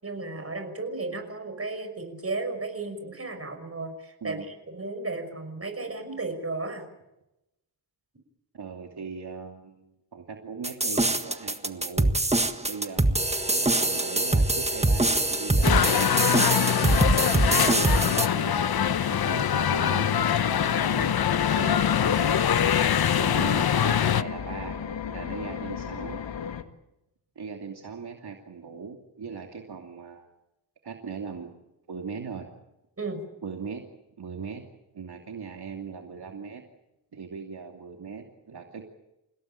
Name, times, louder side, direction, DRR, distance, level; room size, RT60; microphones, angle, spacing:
voice 1, 0.0-4.4 4.7-6.8 12.5-12.6 21.5-21.8 33.0-33.2, right 3 dB, 30° right, 7 dB, 6.1 m, -34 dB
voice 2, 8.5-12.1 12.7-16.8 17.5-20.3 20.9-21.2 22.0-24.8 25.1-26.2 27.4-30.3 30.8-31.5 31.9-32.5 33.4-33.8 34.2-34.6 34.9-36.6 37.1-38.8, right 5 dB, 60° right, 2 dB, 2.8 m, -39 dB
sound 1, 10.6-18.3, right 2 dB, 15° right, 1.7 m, -23 dB
sound 2, 15.6-24.2, left 9 dB, 60° left, 0.8 m, -23 dB
sound 3, 18.6-26.6, left 7 dB, 80° left, 1.9 m, -35 dB
29.5 x 17.5 x 9.0 m, 0.93 s
wide cardioid pair, 90°, 43 cm